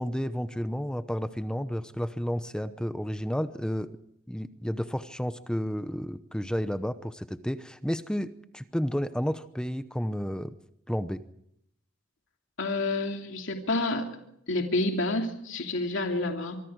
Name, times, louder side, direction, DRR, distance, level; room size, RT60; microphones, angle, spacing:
voice 1, 0.0-3.9 4.3-10.5 10.9-11.2, equal, 5° left, 11 dB, 0.8 m, -31 dB
voice 2, 12.6-14.0 14.5-16.6, left 2 dB, 70° left, 4 dB, 2.8 m, -29 dB
25.5 x 24.0 x 4.7 m, 0.74 s
head